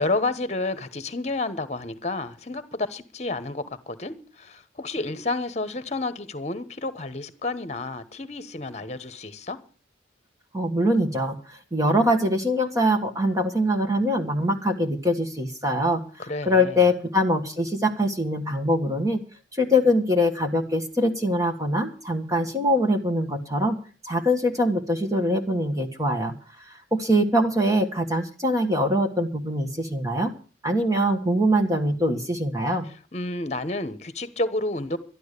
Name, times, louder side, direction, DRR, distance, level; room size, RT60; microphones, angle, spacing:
voice 1, 0.0-9.6 16.2-16.8 33.1-35.0, left 2 dB, 35° left, 1.2 m, -30 dB
voice 2, 10.5-16.0 16.4-19.2 19.5-23.8 24.0-26.3 26.6-30.3 30.6-32.9, equal, 20° right, 1.5 m, -23 dB
12.5 x 12.0 x 6.7 m
head